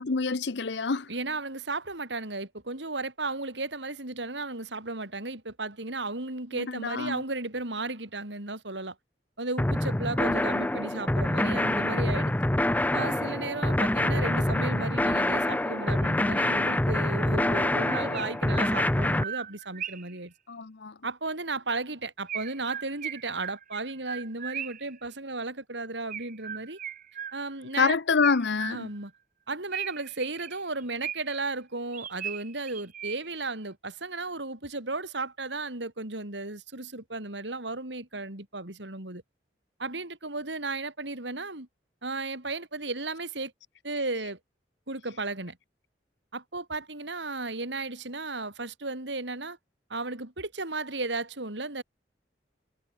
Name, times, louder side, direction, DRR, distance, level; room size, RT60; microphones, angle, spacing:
voice 1, 0.0-1.1 6.5-7.2 20.5-20.9 27.8-28.9, left 4 dB, 75° left, 0.8 m, -27 dB
voice 2, 1.1-9.0 9.4-12.3 12.9-20.3 21.0-26.8 27.3-28.0 28.7-29.1 29.5-39.2 39.8-41.7 42.0-43.5 43.8-44.4 44.9-45.6 46.3-49.6 49.9-51.8, right 3 dB, 80° right, 4.4 m, -34 dB
sound 1, 9.6-19.2, left 1 dB, 10° left, 0.5 m, -26 dB
Chirp tweet, 17.8-20.2 22.3-24.9 26.1-27.7 28.2-29.1 29.7-31.5 31.9-33.4, right 9 dB, 50° right, 3.5 m, -39 dB
head